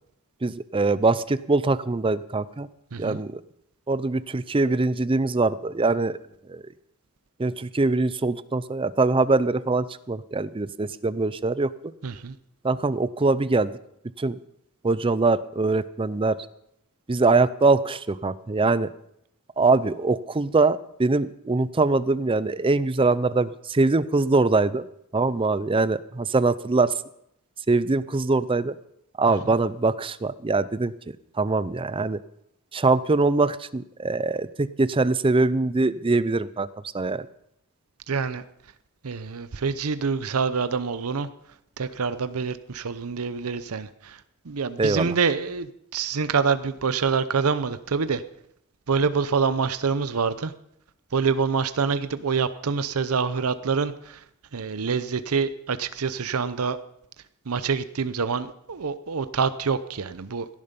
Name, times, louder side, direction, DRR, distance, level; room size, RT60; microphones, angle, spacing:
voice 1, 0.4-2.7 3.0-3.4 3.9-6.2 6.5-6.6 7.4-11.7 12.6-13.7 14.2-14.4 14.8-16.4 17.1-18.9 19.6-24.9 25.1-26.9 27.7-28.8 29.2-30.9 31.4-32.2 32.7-36.7 36.9-37.3 44.8-45.2, right 3 dB, 25° right, 16 dB, 0.5 m, -23 dB
voice 2, 2.9-3.2 12.0-12.3 38.1-38.4 39.0-41.3 41.8-44.2 44.5-48.2 48.9-50.5 51.1-54.2 54.5-56.8 57.5-60.5, right 5 dB, 80° right, 13 dB, 0.7 m, -26 dB
16.5 x 11.0 x 5.3 m, 0.76 s
head